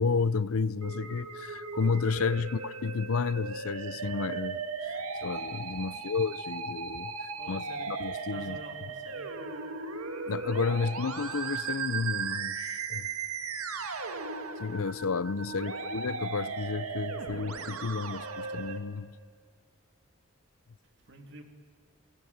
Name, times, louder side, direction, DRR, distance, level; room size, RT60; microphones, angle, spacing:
voice 1, 0.0-8.6 10.3-13.1 14.6-19.1, left 4 dB, 75° left, 0.6 m, -32 dB
Musical instrument, 0.8-18.8, right 5 dB, 80° right, 2.0 m, -37 dB
voice 2, 7.3-7.9 8.3-9.6 15.4-15.8 21.0-21.4, right 1 dB, 55° right, 2.9 m, -49 dB
28.0 x 20.0 x 9.5 m
head